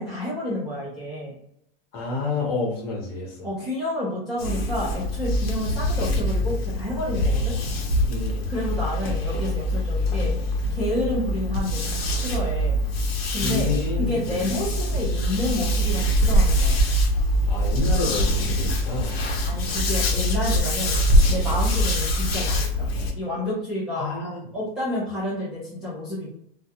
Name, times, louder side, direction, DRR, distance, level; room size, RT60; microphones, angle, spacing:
voice 1, 0.0-1.3 3.4-7.5 8.5-10.3 10.7-12.8 13.3-13.7 14.0-16.8 19.4-21.0 21.3-22.9 23.2-24.1 24.5-26.3, left 1 dB, ahead, -11 dB, 0.3 m, -29 dB
voice 2, 1.9-3.5 7.7-8.5 13.4-14.4 17.4-19.1 21.5-21.6 24.0-24.4, left 3 dB, 40° left, -2 dB, 1.0 m, -29 dB
sound 1, 4.4-23.1, equal, 90° left, 0.8 m, -23 dB
2.3 x 2.2 x 2.7 m, 0.73 s
supercardioid pair, 160°, 29 cm